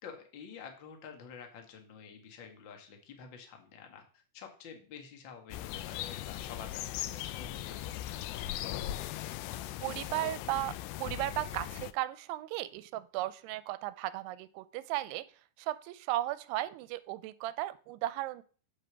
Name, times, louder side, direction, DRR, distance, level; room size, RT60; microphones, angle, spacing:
voice 1, 0.0-4.0 4.3-8.8 9.4-9.8, left 6 dB, 70° left, 4 dB, 1.1 m, -49 dB
sound 1, 5.5-11.9, left 13 dB, 90° left, 2.0 m, -39 dB
voice 2, 9.8-10.7 11.0-15.3 15.6-18.4, right 16 dB, 85° right, 15 dB, 2.6 m, -35 dB
7.9 x 5.2 x 6.8 m, 0.40 s
omnidirectional pair, 4.7 m